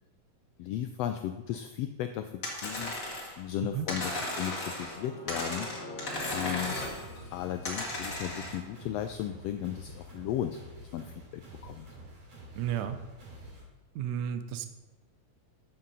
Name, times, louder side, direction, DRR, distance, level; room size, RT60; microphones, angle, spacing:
voice 1, 0.6-2.9 3.4-5.7 6.3-6.8 7.3-11.9, left 11 dB, 85° left, 7 dB, 1.4 m, -35 dB
sound 1, 2.4-3.4 3.9-5.0 5.3-7.0 7.6-8.6, left 1 dB, 35° left, 1.8 m, -35 dB
sound 2, 3.0-8.2, left 2 dB, 55° left, 2.4 m, -45 dB
sound 3, 6.5-13.6, right 1 dB, 70° right, 4.2 m, -49 dB
voice 2, 12.6-13.0 14.0-14.7, right 9 dB, 90° right, 10 dB, 2.2 m, -32 dB
7.7 x 7.2 x 5.4 m, 1.1 s
omnidirectional pair, 3.3 m